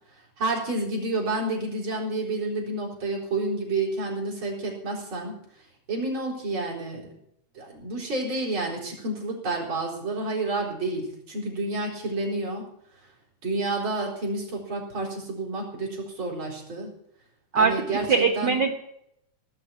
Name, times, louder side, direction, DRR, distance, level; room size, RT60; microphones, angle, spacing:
voice 1, 0.4-5.3 5.9-7.1 7.5-12.7 13.4-16.9 17.5-18.6, right 2 dB, 40° right, -2 dB, 5.0 m, -29 dB
voice 2, 17.5-18.7, right 5 dB, 85° right, 4 dB, 0.9 m, -22 dB
18.0 x 6.5 x 9.4 m, 0.76 s
omnidirectional pair, 3.6 m